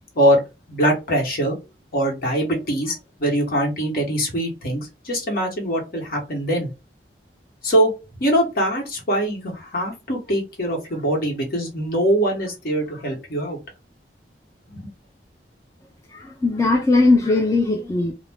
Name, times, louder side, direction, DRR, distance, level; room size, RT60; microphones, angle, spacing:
voice 1, 0.7-1.6 1.9-6.7 7.6-7.9 8.2-13.6 14.7-14.9, right 1 dB, 55° left, 1.1 m, -22 dB
voice 2, 16.1-18.1, left 3 dB, 15° left, 0.4 m, -19 dB
2.4 x 2.1 x 3.4 m
head